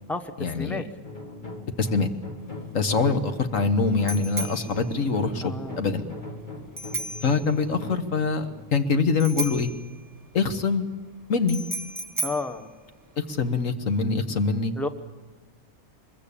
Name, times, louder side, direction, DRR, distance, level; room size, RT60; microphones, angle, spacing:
voice 1, 0.4-0.8 1.8-2.1 2.7-6.0 7.2-9.7 10.3-10.9 11.3-11.6 13.2-14.7, left 4 dB, 80° left, 8 dB, 1.8 m, -24 dB
sound 1, 1.0-9.8, left 2 dB, 35° left, 2.2 m, -40 dB
Bicycle bell, 2.4-13.6, right 2 dB, 15° right, 1.7 m, -37 dB
voice 2, 5.4-5.9 12.2-12.7 14.8-14.9, left 3 dB, ahead, 9 dB, 1.1 m, -31 dB
24.0 x 22.0 x 8.7 m, 1.3 s
omnidirectional pair, 1.3 m